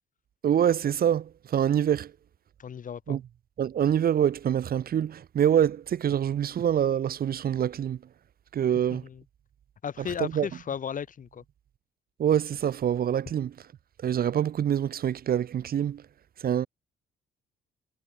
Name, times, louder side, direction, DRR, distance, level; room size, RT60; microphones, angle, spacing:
voice 1, 0.4-2.1 3.1-3.2 3.6-8.0 8.5-9.1 10.0-10.5 12.2-13.5 14.0-16.1 16.4-16.7, right 9 dB, 50° right, 0.6 m, -25 dB
voice 2, 2.6-3.2 8.9-9.2 9.8-11.4, left 7 dB, 40° left, 0.8 m, -35 dB
cardioid pair, 90°, 20 cm